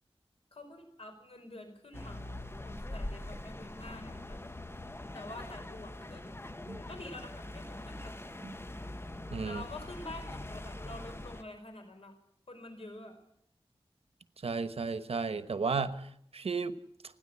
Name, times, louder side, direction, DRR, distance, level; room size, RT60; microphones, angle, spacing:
voice 1, 0.5-2.4 2.6-4.5 5.1-6.3 6.9-8.1 9.4-12.1 12.5-13.2, left 2 dB, 80° left, 6 dB, 4.7 m, -47 dB
sound 1, 1.9-11.4, left 1 dB, 25° left, 1.0 m, -43 dB
voice 2, 9.3-9.6 14.4-15.9 16.3-16.8, right 4 dB, 90° right, 11 dB, 1.1 m, -33 dB
30.0 x 10.5 x 8.7 m, 0.74 s
wide cardioid pair, 65°, 10 cm